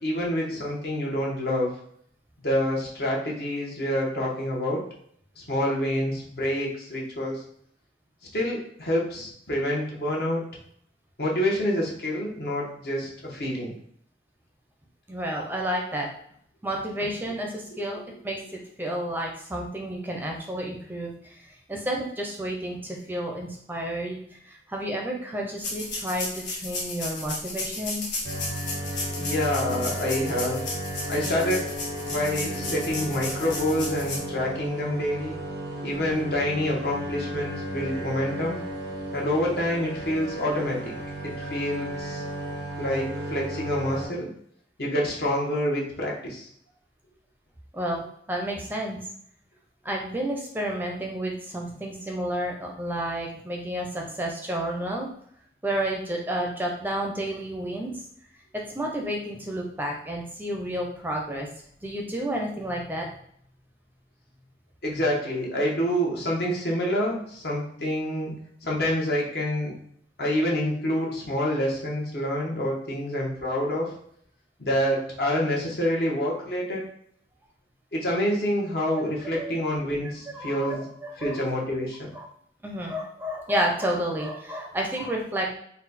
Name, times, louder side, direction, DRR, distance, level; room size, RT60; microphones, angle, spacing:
voice 1, 0.0-1.7 2.4-4.8 5.4-7.4 8.3-10.4 11.2-13.7 29.2-30.7 31.1-31.7 32.0-35.4 35.8-38.6 39.1-40.9 41.2-42.2 42.8-44.3 44.8-46.5 64.8-68.3 68.6-69.7 70.2-73.9 74.6-76.8 77.9-80.9 81.2-82.0, left 1 dB, 65° left, -3 dB, 1.1 m, -27 dB
voice 2, 15.1-16.1 16.6-28.0 41.4-41.5 47.7-48.0 48.3-49.0 49.8-55.1 55.6-58.0 58.7-61.5 61.8-63.1 78.8-79.0 79.4-79.5 80.3-81.5 82.1-82.3 82.6-85.5, right 1 dB, 10° right, 0 dB, 0.6 m, -31 dB
sound 1, 25.6-34.2, left 3 dB, 90° left, 1.2 m, -34 dB
sound 2, 28.2-44.1, right 1 dB, 75° right, 0.7 m, -34 dB
4.1 x 2.3 x 4.1 m, 0.66 s
head